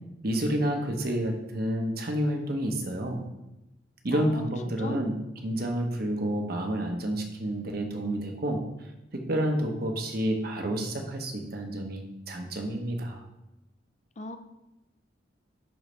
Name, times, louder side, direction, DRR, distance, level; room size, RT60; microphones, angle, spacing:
voice 1, 0.2-3.2 4.0-5.2 5.4-8.6 9.1-13.2, right 1 dB, 55° right, 3 dB, 1.0 m, -29 dB
voice 2, 4.1-4.5 4.8-5.0 14.2-14.4, left 2 dB, 40° left, 7 dB, 0.5 m, -37 dB
10.5 x 4.0 x 3.3 m, 0.94 s
head